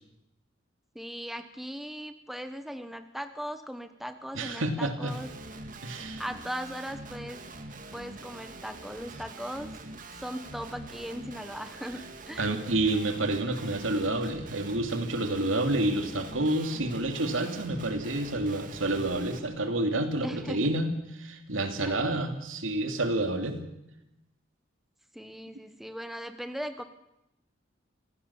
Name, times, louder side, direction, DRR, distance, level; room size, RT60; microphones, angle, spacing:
voice 1, 0.9-5.3 6.2-7.4 7.9-9.7 10.2-12.5 20.2-20.6 21.8-22.0 25.1-26.8, equal, ahead, 9 dB, 1.0 m, -38 dB
voice 2, 4.3-5.1 5.8-6.2 12.4-20.9 21.1-23.6, right 2 dB, 85° right, 6 dB, 2.7 m, -29 dB
Guitar, 5.1-19.4, right 2 dB, 45° right, 1.9 m, -44 dB
26.0 x 16.0 x 7.1 m, 0.86 s
head